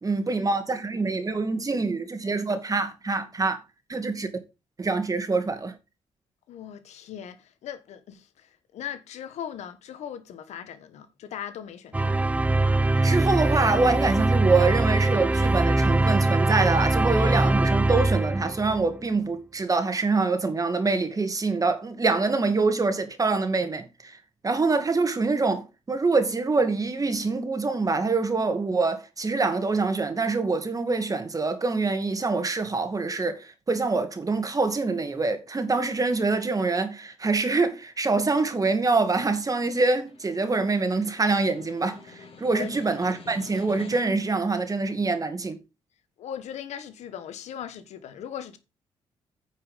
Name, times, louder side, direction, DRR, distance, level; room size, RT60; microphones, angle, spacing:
voice 1, 0.0-3.6 3.9-4.3 4.8-5.7 13.0-45.6, right 3 dB, 30° right, 2.2 m, -25 dB
voice 2, 6.5-12.2 42.5-42.8 46.2-48.6, left 9 dB, 80° left, 1.3 m, -39 dB
sound 1, 11.9-19.0, right 2 dB, 10° right, 0.5 m, -22 dB
Snare drum, 39.4-44.3, left 4 dB, 55° left, 4.8 m, -48 dB
9.4 x 5.6 x 5.1 m
cardioid pair, 70°, 11 cm